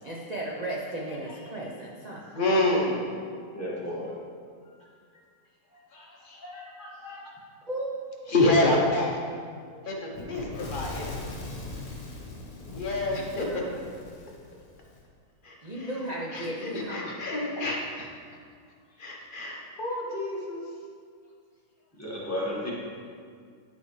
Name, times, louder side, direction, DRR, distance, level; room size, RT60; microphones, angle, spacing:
voice 1, 0.0-2.3 7.7-8.6 9.3-10.1 13.5-13.8 15.6-17.1, right 1 dB, 80° right, -3 dB, 0.3 m, -35 dB
voice 2, 2.3-3.2 5.9-7.3 8.3-9.1 9.8-11.2 12.7-13.5 15.4-15.9 16.3-18.1 19.0-20.6, left 2 dB, 40° left, -2 dB, 0.9 m, -28 dB
voice 3, 3.5-4.1 22.0-22.7, left 1 dB, 10° left, -7 dB, 1.4 m, -32 dB
Fire / Explosion, 10.1-15.0, left 2 dB, 60° left, 1.5 m, -40 dB
11.5 x 4.3 x 3.2 m, 2.1 s
omnidirectional pair, 1.8 m